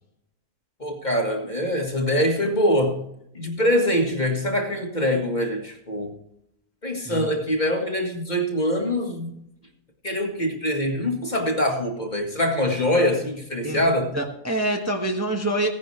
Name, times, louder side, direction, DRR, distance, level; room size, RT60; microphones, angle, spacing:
voice 1, 0.8-3.0 3.4-6.1 6.8-9.3 10.0-14.1, equal, 30° left, 2 dB, 1.7 m, -24 dB
voice 2, 14.1-15.7, right 1 dB, 10° right, 1 dB, 1.2 m, -26 dB
16.5 x 10.5 x 3.3 m, 0.78 s
omnidirectional pair, 1.6 m